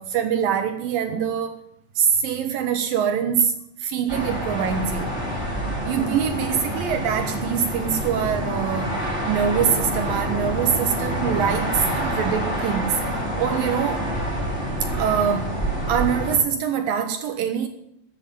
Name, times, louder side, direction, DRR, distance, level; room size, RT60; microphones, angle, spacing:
voice 1, 0.0-1.6 2.0-5.1 5.8-9.0 9.2-13.0 13.4-14.1 14.9-15.6 15.9-17.7, right 8 dB, 75° right, 7 dB, 2.1 m, -24 dB
sound 1, 4.1-16.4, equal, ahead, 7.1 m, -27 dB
13.5 x 7.5 x 9.9 m, 0.79 s
omnidirectional pair, 5.3 m